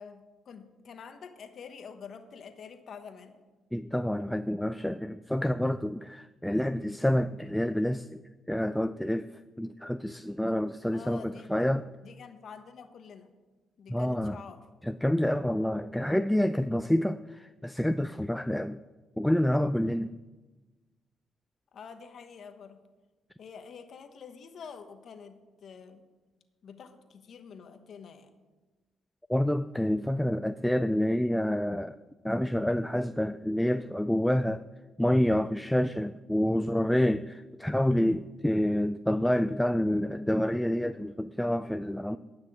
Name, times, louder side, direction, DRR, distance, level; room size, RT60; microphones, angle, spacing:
voice 1, 0.0-3.3 10.8-11.5 12.0-13.3 13.8-14.7 21.7-22.8 23.4-26.0 26.6-28.3, left 6 dB, 60° left, 1.2 m, -47 dB
voice 2, 3.7-8.2 8.5-11.9 13.9-14.4 14.8-18.8 19.2-20.2 29.3-32.0 32.2-34.6 35.0-42.2, left 1 dB, 5° left, 0.3 m, -28 dB
9.9 x 6.1 x 8.6 m
cardioid pair, 90°, 0 cm